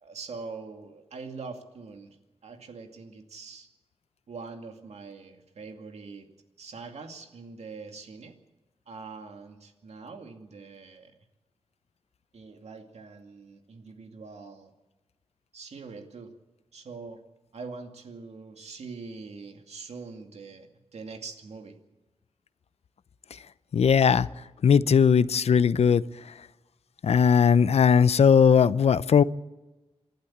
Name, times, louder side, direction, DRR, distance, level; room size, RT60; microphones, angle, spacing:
voice 1, 0.0-2.2 2.4-3.7 4.3-6.3 6.6-8.4 8.9-11.1 12.3-14.7 15.5-16.3 16.7-17.2 17.5-21.8, right 4 dB, 85° right, 2.4 m, -43 dB
voice 2, 23.7-24.3 24.6-26.0 27.0-29.2, left 7 dB, 75° left, 0.6 m, -19 dB
28.0 x 12.0 x 8.7 m
wide cardioid pair, 115°, 11 cm